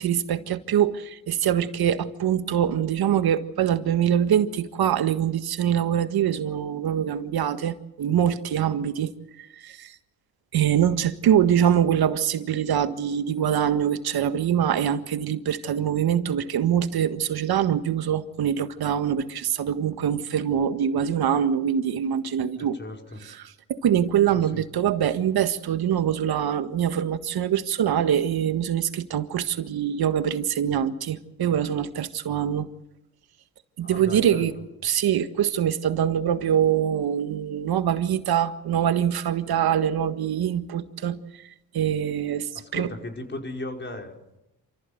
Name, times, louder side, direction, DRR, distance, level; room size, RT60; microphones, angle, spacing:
voice 1, 0.0-9.1 9.6-9.9 10.5-22.8 23.7-32.7 33.8-34.5 34.8-41.2 41.7-42.5 42.7-42.9, right 9 dB, 65° right, 1.7 m, -24 dB
voice 2, 22.6-23.2 24.3-24.6 33.8-34.6 42.5-44.1, left 2 dB, 25° left, 5.5 m, -37 dB
28.5 x 14.5 x 8.1 m
supercardioid pair, 70°, 41 cm